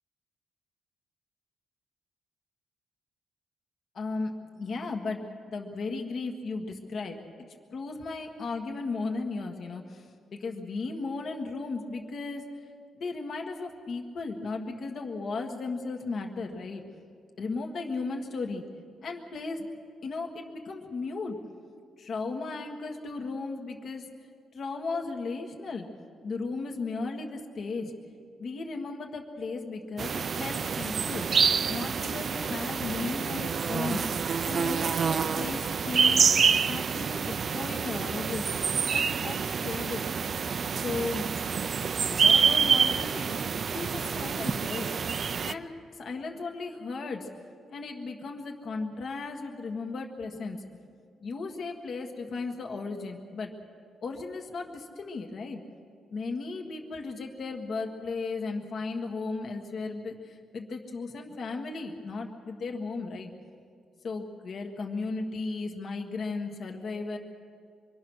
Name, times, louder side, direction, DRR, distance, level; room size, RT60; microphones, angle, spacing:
voice 1, 3.9-7.2 7.7-12.6 13.0-16.8 17.4-18.6 19.0-19.7 20.0-21.4 22.0-24.1 24.5-25.9 26.2-27.9 28.4-31.3 31.7-34.1 34.4-38.5 38.9-40.1 40.8-41.3 42.0-44.9 45.4-47.3 47.7-50.6 51.2-53.5 54.0-55.6 56.1-63.3 64.0-67.2, left 3 dB, 50° left, 2 dB, 1.6 m, -35 dB
sound 1, 30.0-45.5, right 6 dB, 40° right, 0.5 m, -27 dB
25.5 x 23.5 x 6.3 m, 2.3 s
cardioid pair, 140°, 0 cm